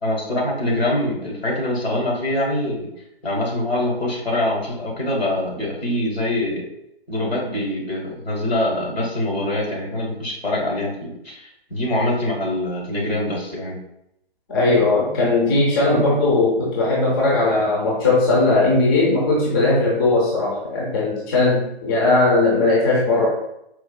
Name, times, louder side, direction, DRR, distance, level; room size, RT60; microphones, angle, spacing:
voice 1, 0.0-2.9 3.2-6.6 7.1-13.8, left 1 dB, 75° left, -2 dB, 1.3 m, -24 dB
voice 2, 14.5-23.3, left 2 dB, 25° left, -5 dB, 0.7 m, -18 dB
4.3 x 2.3 x 2.2 m, 0.81 s
figure-of-eight pair, 135°, 31 cm